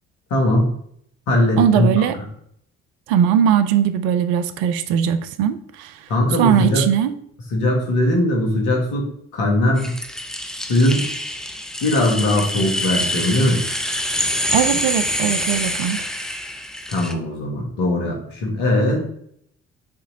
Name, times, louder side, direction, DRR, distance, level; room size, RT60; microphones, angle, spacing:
voice 1, 0.3-0.7 1.3-2.0 6.1-6.8 7.5-9.1 9.3-10.0 10.7-11.0 11.8-13.6 16.9-19.1, left 1 dB, 65° left, 0 dB, 1.4 m, -19 dB
voice 2, 1.6-2.2 3.1-5.9 6.4-7.2 14.5-16.0, right 9 dB, 70° right, 11 dB, 0.5 m, -19 dB
sound 1, 9.8-17.1, left 1 dB, ahead, 0.5 m, -26 dB
6.3 x 3.0 x 2.7 m, 0.68 s
figure-of-eight pair, 45°, 33 cm